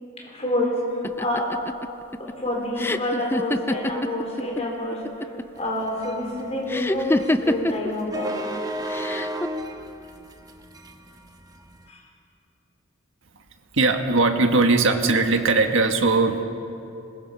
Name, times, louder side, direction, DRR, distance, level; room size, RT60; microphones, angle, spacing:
voice 1, 0.2-0.8 1.2-1.5 2.2-8.4 11.9-12.0, left 1 dB, 30° left, -2 dB, 4.2 m, -28 dB
sound 1, 1.0-4.6 4.9-5.6 6.7-7.9 8.9-9.5, left 1 dB, 10° left, 0.4 m, -26 dB
sound 2, 5.6-11.9, right 1 dB, 15° right, 1.0 m, -33 dB
voice 2, 13.7-16.4, right 3 dB, 60° right, 5 dB, 1.6 m, -20 dB
26.0 x 21.0 x 5.7 m, 2.8 s
head